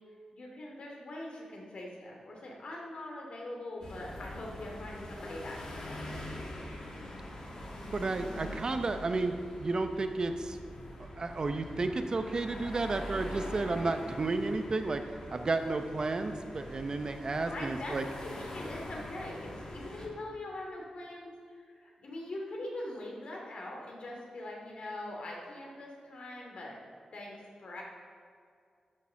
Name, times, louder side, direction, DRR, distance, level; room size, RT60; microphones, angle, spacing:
voice 1, 0.3-6.2 17.5-26.8 27.1-27.8, left 1 dB, 60° left, -1 dB, 2.6 m, -42 dB
sound 1, 3.8-20.1, left 1 dB, 40° left, 2.0 m, -43 dB
voice 2, 7.9-10.6 11.2-15.0 15.3-18.0, right 3 dB, 35° right, 7 dB, 0.7 m, -32 dB
13.0 x 6.6 x 6.3 m, 2.2 s
wide cardioid pair, 150°, 2 cm